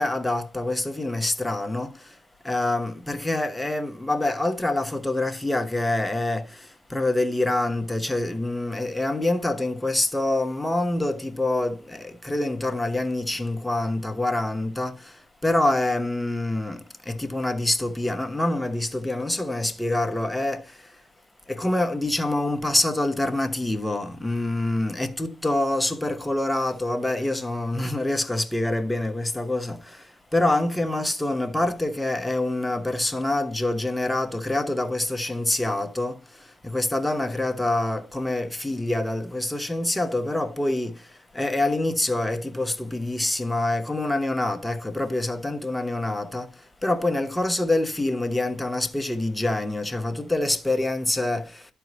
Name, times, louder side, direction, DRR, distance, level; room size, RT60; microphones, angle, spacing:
voice 1, 0.0-1.9 2.4-6.4 6.9-14.9 15.4-16.8 17.1-20.6 21.5-29.8 30.3-36.1 36.6-40.9 41.3-46.5 46.8-51.5, left 2 dB, 5° left, 1.1 m, -26 dB
12.0 x 4.5 x 3.1 m
cardioid pair, 90°, 0 cm